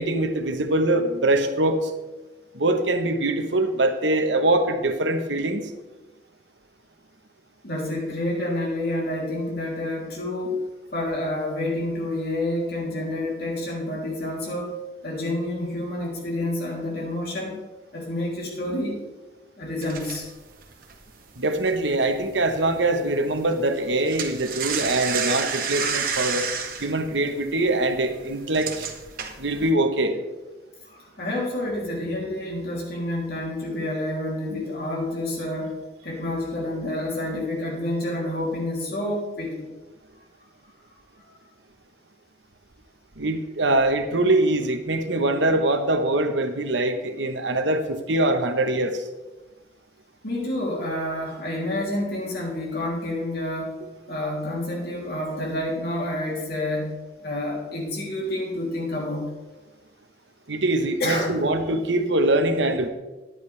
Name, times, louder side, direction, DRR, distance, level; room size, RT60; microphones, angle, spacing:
voice 1, 0.0-1.9 2.5-5.7 21.4-26.5 26.8-28.9 29.4-30.2 43.2-49.1 60.5-62.9, right 2 dB, 75° right, 7 dB, 1.2 m, -23 dB
voice 2, 7.6-17.6 17.9-19.0 19.6-20.3 30.8-39.7 41.2-41.4 50.2-53.8 54.1-59.3 61.0-61.4, left 1 dB, 55° left, -3 dB, 3.3 m, -29 dB
sound 1, 19.8-22.5 22.8-23.1 23.4-29.7, right 6 dB, 50° right, 1.4 m, -30 dB
14.0 x 10.5 x 3.4 m, 1.2 s
head